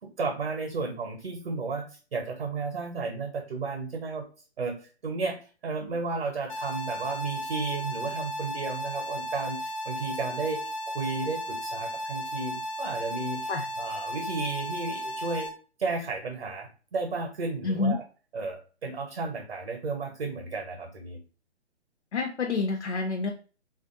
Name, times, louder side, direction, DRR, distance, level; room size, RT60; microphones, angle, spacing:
voice 1, 0.0-4.2 4.6-4.8 5.0-5.4 5.6-10.6 10.9-13.5 13.8-15.5 15.8-18.0 18.3-21.2, right 4 dB, 55° right, 2 dB, 0.8 m, -33 dB
sound 1, 6.5-15.5, equal, 30° left, 0.4 m, -35 dB
voice 2, 17.6-18.0 22.1-23.3, left 3 dB, 75° left, 3 dB, 0.6 m, -28 dB
3.3 x 2.5 x 2.5 m, 0.36 s
figure-of-eight pair, 135°, 34 cm